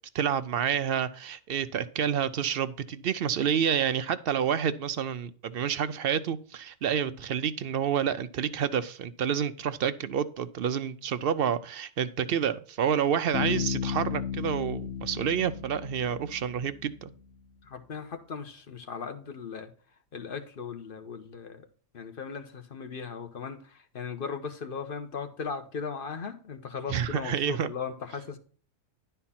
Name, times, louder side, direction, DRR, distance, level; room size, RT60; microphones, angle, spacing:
voice 1, 0.1-17.1 26.9-27.7, right 8 dB, 65° right, 0.6 m, -29 dB
Bass guitar, 13.3-17.1, left 7 dB, 65° left, 1.8 m, -34 dB
voice 2, 17.6-21.7 21.9-28.4, left 5 dB, 40° left, 1.2 m, -38 dB
11.0 x 4.4 x 5.7 m
omnidirectional pair, 1.4 m